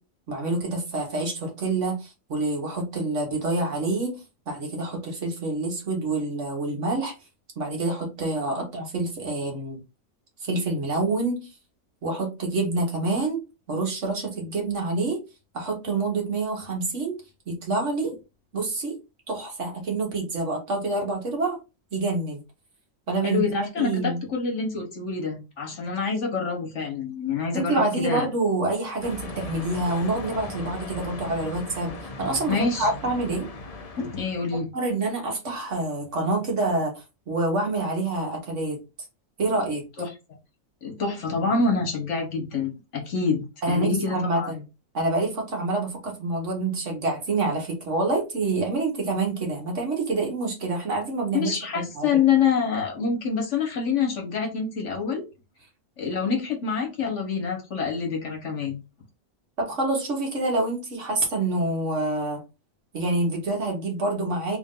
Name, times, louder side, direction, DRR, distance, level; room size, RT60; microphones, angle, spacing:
voice 1, 0.3-4.2 4.5-7.1 7.6-9.8 10.4-11.5 12.0-13.4 13.7-15.2 15.5-17.2 17.5-18.1 18.5-19.0 19.3-21.6 21.9-22.4 23.1-23.4 23.8-24.2 27.5-31.9 32.2-33.5 34.5-38.8 39.4-39.9 43.6-44.6 44.9-52.1 59.6-62.4 62.9-64.6, right 2 dB, 65° right, 1 dB, 1.6 m, -27 dB
voice 2, 23.2-28.3 32.5-32.9 34.0-34.7 40.0-40.1 40.8-44.5 51.3-55.2 56.0-58.8, left 5 dB, 65° left, 2 dB, 1.4 m, -26 dB
sound 1, 29.0-34.6, left 2 dB, 40° left, 0.6 m, -38 dB
3.5 x 2.6 x 3.7 m, 0.27 s
omnidirectional pair, 1.4 m